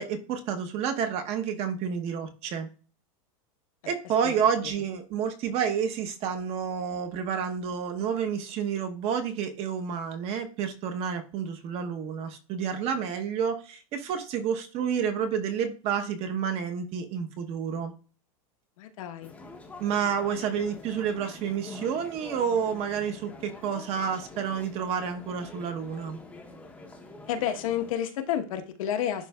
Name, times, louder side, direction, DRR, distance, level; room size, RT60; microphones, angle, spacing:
voice 1, 0.0-2.7 3.8-17.9 19.8-26.2, right 7 dB, 35° right, 6 dB, 0.9 m, -29 dB
voice 2, 18.8-19.3 27.3-29.3, left 10 dB, 75° left, 6 dB, 1.0 m, -30 dB
sound 1, 19.2-27.9, left 2 dB, 5° left, 0.7 m, -46 dB
11.0 x 3.9 x 2.3 m, 0.36 s
supercardioid pair, 160°, 18 cm